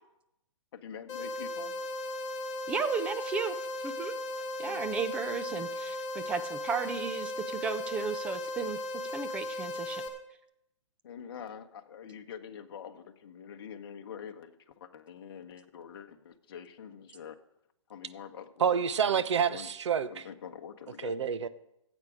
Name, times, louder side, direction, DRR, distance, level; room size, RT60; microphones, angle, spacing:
voice 1, 0.7-1.7 4.6-4.8 11.0-17.4 17.9-18.8 19.1-19.7 20.1-21.2, left 8 dB, 50° left, 5 dB, 1.1 m, -45 dB
sound 1, 1.1-10.1, left 1 dB, 20° left, 2.1 m, -37 dB
voice 2, 2.7-4.2 4.6-8.8 9.1-10.0, right 5 dB, 5° right, 9 dB, 0.4 m, -34 dB
voice 3, 18.6-20.2 21.0-21.5, right 7 dB, 65° right, 14 dB, 0.9 m, -28 dB
16.0 x 8.2 x 5.0 m, 0.83 s
hypercardioid pair, 155°, 16 cm